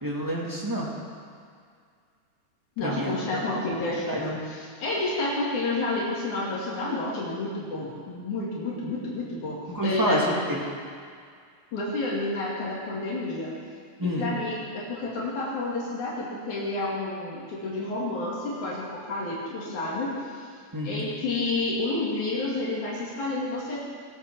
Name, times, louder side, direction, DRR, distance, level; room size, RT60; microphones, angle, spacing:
voice 1, 0.0-0.9 2.8-3.6 4.1-4.2 9.7-10.6 14.0-14.3 20.7-21.0, equal, 10° right, -4 dB, 1.9 m, -28 dB
voice 2, 2.8-10.2 11.7-13.5 14.0-20.5 20.8-23.8, left 2 dB, 80° left, -6 dB, 4.0 m, -30 dB
21.0 x 8.4 x 6.2 m, 2.1 s
omnidirectional pair, 3.4 m